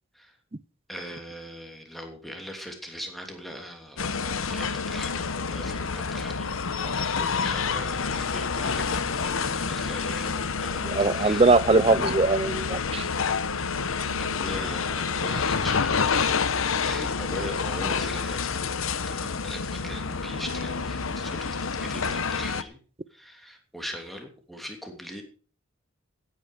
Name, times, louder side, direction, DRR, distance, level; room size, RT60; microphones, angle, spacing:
voice 1, 0.9-9.3 9.6-10.9 11.1-11.6 14.2-16.4 16.8-18.6 19.1-22.8 23.1-25.2, equal, ahead, 3.0 m, -40 dB
sound 1, 4.0-22.6, left 5 dB, 85° left, 1.0 m, -28 dB
voice 2, 10.8-13.0, right 3 dB, 30° right, 0.5 m, -21 dB
16.0 x 9.6 x 5.0 m
head